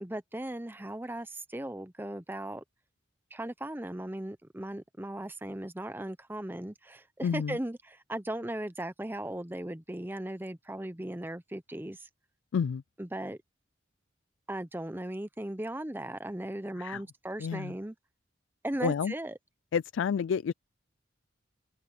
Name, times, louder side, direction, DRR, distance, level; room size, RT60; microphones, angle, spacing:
voice 1, 0.0-2.6 3.3-12.0 13.0-13.4 14.5-17.9 18.6-19.3, right 1 dB, 10° right, 0.7 m, -37 dB
voice 2, 7.2-7.6 12.5-12.8 16.8-17.0 17.4-17.7 18.8-19.1 19.7-20.5, left 7 dB, 75° left, 0.3 m, -29 dB
head